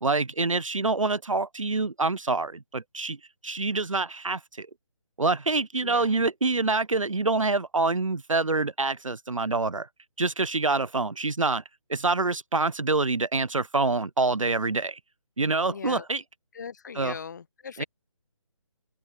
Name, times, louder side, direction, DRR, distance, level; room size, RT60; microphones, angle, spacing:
voice 1, 0.0-3.2 3.4-4.7 5.2-9.9 10.2-11.6 11.9-15.0 15.4-16.2 16.9-17.2 17.8-17.9, right 3 dB, 75° right, 0.8 m, -26 dB
voice 2, 5.8-6.2 15.7-16.0 16.6-17.8, left 6 dB, 35° left, 0.8 m, -39 dB
figure-of-eight pair, 150°, 17 cm